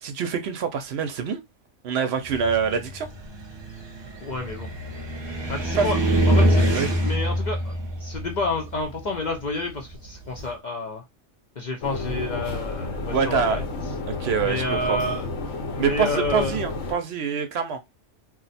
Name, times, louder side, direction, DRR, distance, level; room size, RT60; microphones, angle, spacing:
voice 1, 0.0-1.4 1.8-3.1 5.8-5.9 6.7-6.9 13.1-13.6 14.1-15.0 15.8-17.8, right 6 dB, 65° right, 0.7 m, -25 dB
Car, 2.3-10.5, equal, 30° right, 0.5 m, -25 dB
voice 2, 4.2-4.7 5.5-6.0 6.3-11.0 11.6-13.6 14.4-15.3 15.7-16.6, left 2 dB, 50° left, 0.6 m, -29 dB
sound 1, 11.8-16.9, left 2 dB, 90° left, 1.2 m, -31 dB
2.5 x 2.1 x 4.0 m
omnidirectional pair, 1.2 m